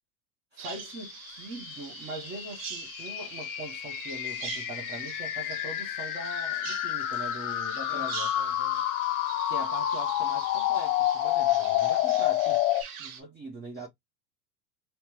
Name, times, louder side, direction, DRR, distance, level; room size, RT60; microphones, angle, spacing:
voice 1, 0.5-8.3 9.4-12.6 13.0-13.9, right 1 dB, 20° right, 0.8 m, -41 dB
Bird vocalization bird call bird song, 0.6-13.2, right 7 dB, 55° right, 1.0 m, -43 dB
sound 1, 0.9-12.8, left 14 dB, 60° left, 0.6 m, -29 dB
voice 2, 7.9-9.0 13.7-13.9, left 4 dB, 5° left, 0.4 m, -51 dB
3.1 x 2.0 x 2.9 m
hypercardioid pair, 95°, 48 cm